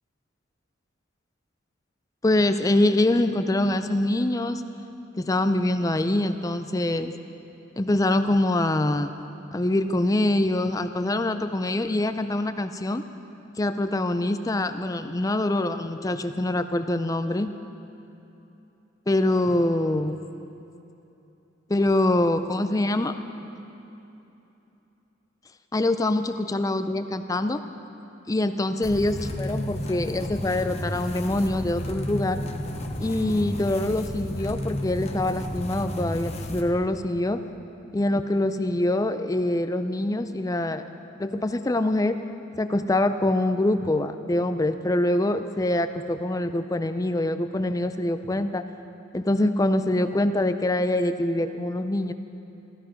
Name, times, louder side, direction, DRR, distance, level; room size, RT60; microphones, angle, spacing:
voice 1, 2.2-4.6 5.2-7.1 7.8-9.1 9.5-13.0 13.6-17.5 19.1-20.2 21.7-23.2 25.7-27.6 28.3-32.4 33.0-37.4 37.9-40.8 41.2-42.2 42.6-48.6 49.1-52.1, left 1 dB, 15° left, 9 dB, 0.4 m, -24 dB
sound 1, 28.8-36.6, left 1 dB, 30° left, 0.9 m, -32 dB
15.5 x 14.0 x 5.1 m, 3.0 s
head